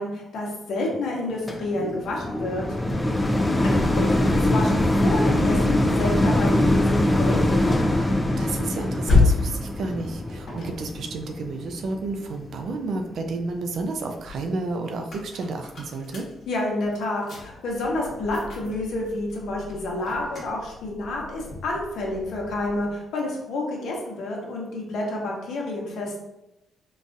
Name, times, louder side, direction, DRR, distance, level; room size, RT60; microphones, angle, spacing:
voice 1, 0.0-2.6 3.6-7.7 16.5-26.2, left 2 dB, 75° left, -1 dB, 0.9 m, -29 dB
sound 1, 1.5-12.7 13.3-13.4, left 1 dB, 15° left, 0.3 m, -23 dB
voice 2, 8.4-16.3, right 3 dB, 65° right, 4 dB, 0.4 m, -31 dB
sound 2, 9.0-12.7 13.2-23.0, left 3 dB, 55° left, 1.1 m, -31 dB
3.9 x 2.4 x 2.6 m, 0.92 s
cardioid pair, 110°, 0 cm